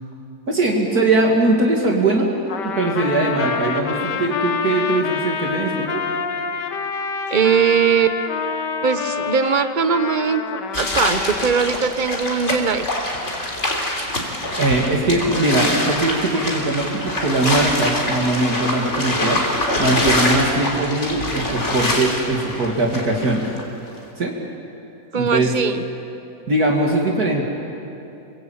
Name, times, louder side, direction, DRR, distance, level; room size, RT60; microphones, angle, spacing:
voice 1, 0.5-2.3 2.6-6.0 14.6-19.4 19.8-23.4 24.2-24.3 25.1-25.5 26.5-27.5, right 2 dB, 60° right, -1 dB, 2.8 m, -20 dB
Trumpet, 2.5-11.5, left 5 dB, 75° left, 1.9 m, -27 dB
voice 2, 7.3-8.4 8.8-12.9 25.1-25.8, right 6 dB, 35° right, 10 dB, 0.9 m, -20 dB
sound 1, 10.7-23.6, left 1 dB, 40° left, 3.8 m, -24 dB
27.5 x 23.0 x 8.7 m, 2.8 s
omnidirectional pair, 1.9 m